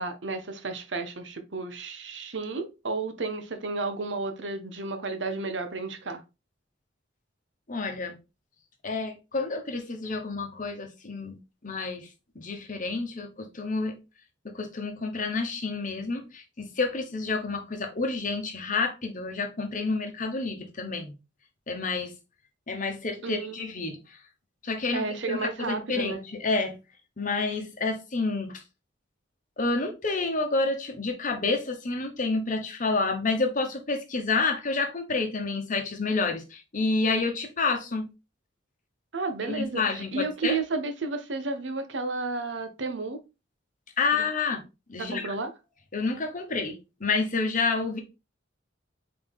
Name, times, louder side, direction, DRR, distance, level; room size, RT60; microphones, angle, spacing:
voice 1, 0.0-6.2 23.2-23.7 24.9-26.2 39.1-43.2 44.1-44.2 45.0-45.5, right 3 dB, 70° right, 0.8 m, -32 dB
voice 2, 7.7-8.2 8.8-11.4 11.6-12.1 12.3-14.0 14.4-21.1 21.7-22.1 22.7-24.2 24.6-26.8 27.2-28.6 29.6-38.1 39.4-40.6 44.0-44.6 44.9-45.3 45.9-48.0, left 3 dB, 45° left, 1.0 m, -29 dB
3.9 x 3.8 x 3.5 m
head